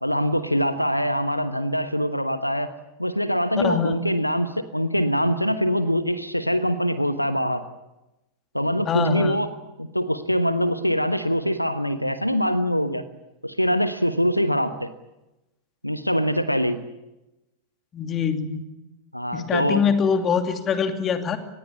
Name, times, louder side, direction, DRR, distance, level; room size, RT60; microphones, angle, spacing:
voice 1, 0.0-2.7 3.0-7.6 8.5-9.5 9.8-13.0 13.4-14.9 15.8-16.8 19.1-19.8, equal, 90° left, 12 dB, 1.2 m, -23 dB
voice 2, 3.6-4.0 8.9-9.5 17.9-18.6 19.3-21.4, left 6 dB, 25° left, 7 dB, 2.7 m, -24 dB
25.0 x 20.5 x 8.4 m, 0.98 s
figure-of-eight pair, 90°, 0 cm